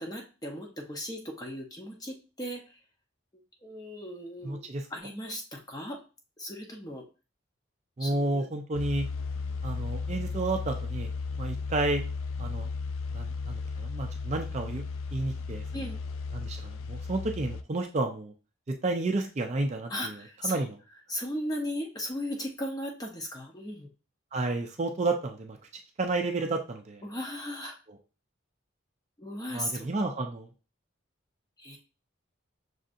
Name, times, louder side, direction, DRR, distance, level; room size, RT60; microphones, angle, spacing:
voice 1, 0.0-2.8 3.3-6.0 6.4-7.1 8.0-8.4 15.7-16.0 19.9-20.6 21.1-23.9 27.0-27.8 29.2-29.9 31.6-31.8, equal, 20° left, 1 dB, 0.7 m, -37 dB
voice 2, 4.4-4.9 8.0-9.1 9.6-11.1 11.4-12.0 12.4-12.7 13.1-14.8 15.1-15.6 16.3-18.3 18.8-20.1 20.4-20.8 24.3-25.6 26.0-27.0 29.5-30.5, right 2 dB, 35° right, 4 dB, 0.4 m, -31 dB
sound 1, 8.7-17.6, left 4 dB, 90° left, 0.4 m, -35 dB
6.3 x 2.6 x 2.5 m, 0.33 s
head